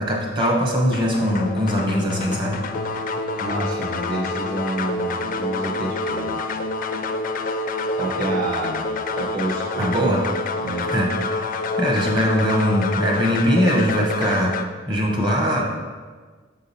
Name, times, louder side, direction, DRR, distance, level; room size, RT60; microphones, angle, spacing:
voice 1, 0.0-2.6 9.8-10.2 10.9-11.4 11.8-14.6 14.9-15.6, equal, 25° right, -1 dB, 1.1 m, -21 dB
sound 1, 0.9-14.6, left 3 dB, 45° left, 0.3 m, -27 dB
voice 2, 3.4-6.4 7.9-8.8 9.1-10.1 10.6-10.9, right 2 dB, 45° right, -3 dB, 1.4 m, -29 dB
6.9 x 3.9 x 4.1 m, 1.4 s
head